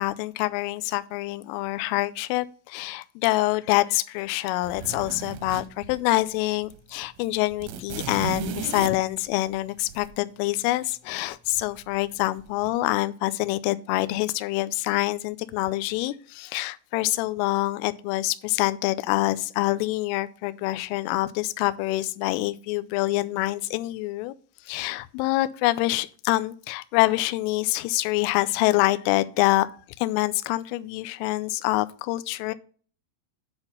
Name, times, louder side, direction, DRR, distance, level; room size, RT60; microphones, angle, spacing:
voice 1, 0.0-24.3 24.7-29.7 30.0-32.5, left 18 dB, 85° left, 3.0 m, -26 dB
sound 1, 4.6-6.3 6.6-6.8 7.0-10.1 11.5-12.1 12.4-12.7, right 7 dB, 85° right, 3.1 m, -35 dB
9.7 x 4.1 x 5.4 m
omnidirectional pair, 5.8 m